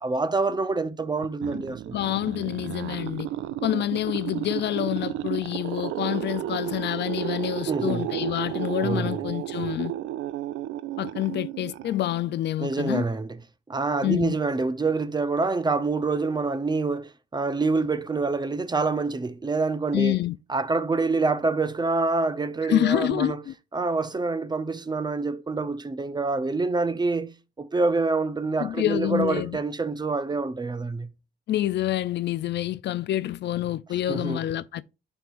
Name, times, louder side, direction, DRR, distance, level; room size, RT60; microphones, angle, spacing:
voice 1, 0.0-2.0 7.7-8.1 8.8-9.3 12.6-13.4 13.7-20.2 20.5-23.4 23.7-31.1 34.1-34.4, right 3 dB, 20° right, 0.6 m, -26 dB
sound 1, 1.2-12.3, right 13 dB, 80° right, 0.4 m, -32 dB
voice 2, 1.9-3.3 3.6-9.9 11.0-13.1 14.0-14.4 19.9-20.4 22.7-23.5 28.6-29.6 31.5-34.8, left 13 dB, 60° left, 0.4 m, -27 dB
11.0 x 4.6 x 2.5 m
cardioid pair, 90°, 20 cm